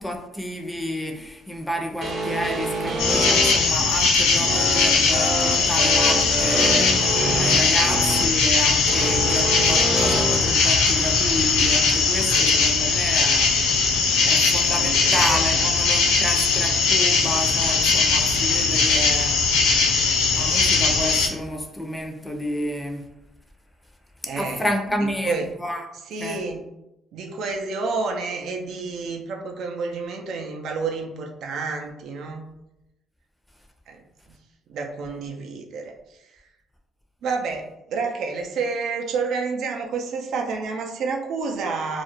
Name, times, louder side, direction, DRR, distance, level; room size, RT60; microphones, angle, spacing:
voice 1, 0.0-13.5 14.3-19.3 20.3-23.1 24.3-25.9 26.2-26.4, equal, 10° left, 2 dB, 0.5 m, -30 dB
sound 1, 2.0-3.5 4.5-8.2 8.9-10.4, right 2 dB, 55° right, 0.7 m, -26 dB
sound 2, 3.0-21.3, left 4 dB, 85° left, 0.4 m, -20 dB
voice 2, 4.4-4.7 7.7-7.8 12.3-12.5 14.2-14.5 14.8-15.7 18.8-19.0 24.3-24.6 25.3-25.4 26.1-26.6 27.1-32.5 33.9-34.0 34.7-35.9 36.2-36.3 37.2-42.0, right 4 dB, 70° right, 2 dB, 0.4 m, -30 dB
2.3 x 2.0 x 2.9 m, 0.90 s
supercardioid pair, 65°, 0 cm